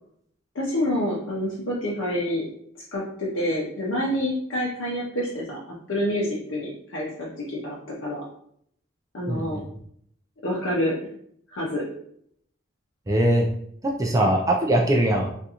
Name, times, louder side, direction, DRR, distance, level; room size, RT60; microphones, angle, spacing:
voice 1, 0.5-2.5 2.9-5.6 5.9-8.2 9.1-9.6 10.4-10.9 11.5-11.8 14.2-14.3, left 1 dB, 75° left, -5 dB, 0.7 m, -27 dB
voice 2, 9.3-9.6 13.1-13.5 13.8-15.3, right 1 dB, 15° right, 0 dB, 0.4 m, -21 dB
3.6 x 2.5 x 2.8 m, 0.67 s
head